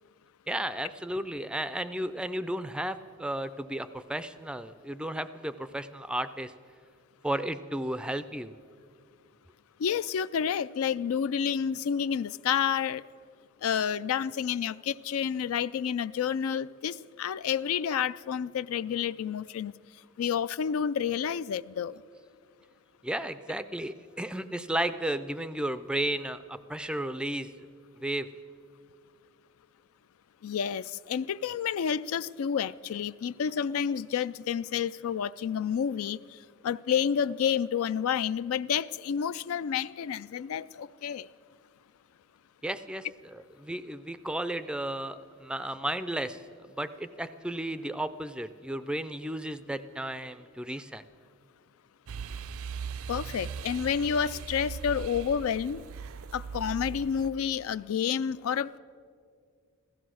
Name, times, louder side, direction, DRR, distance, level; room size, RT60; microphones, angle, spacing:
voice 1, 0.5-6.5 7.2-8.5 23.0-27.5 28.0-28.3 42.6-43.1 43.3-46.4 46.8-51.0, right 1 dB, 5° right, 0.3 m, -33 dB
voice 2, 9.8-13.0 13.6-19.7 20.2-22.0 30.4-36.2 36.6-41.3 53.1-55.8 56.3-58.8, left 8 dB, 80° left, 0.4 m, -29 dB
sound 1, 52.1-57.3, right 6 dB, 75° right, 0.4 m, -39 dB
15.5 x 14.0 x 6.3 m
head